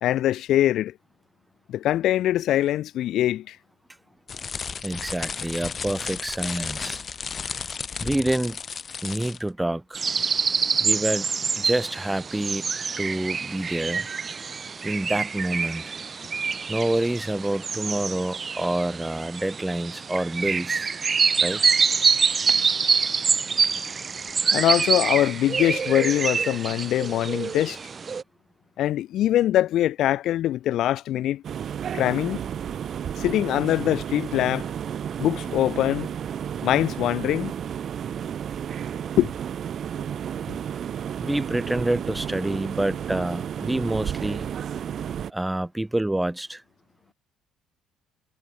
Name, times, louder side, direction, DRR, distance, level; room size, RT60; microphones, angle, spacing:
voice 1, 0.0-0.9 1.7-3.6 24.5-27.8 28.8-31.4 31.9-32.4 33.2-34.7 35.2-36.1 36.6-37.5 39.2-39.3, left 13 dB, 70° left, 0.3 m, -23 dB
sound 1, 4.3-9.5, left 6 dB, 35° left, 1.5 m, -33 dB
voice 2, 4.5-7.0 8.0-8.6 9.0-10.0 10.8-11.3 11.6-12.6 13.0-14.1 14.8-15.8 16.7-20.9 21.4-21.6 41.2-44.5 45.3-46.6, right 1 dB, 10° right, 0.9 m, -27 dB
sound 2, 9.9-28.2, right 5 dB, 35° right, 0.4 m, -26 dB
sound 3, 31.4-45.3, right 9 dB, 50° right, 1.2 m, -32 dB
cardioid pair, 90°, 0 cm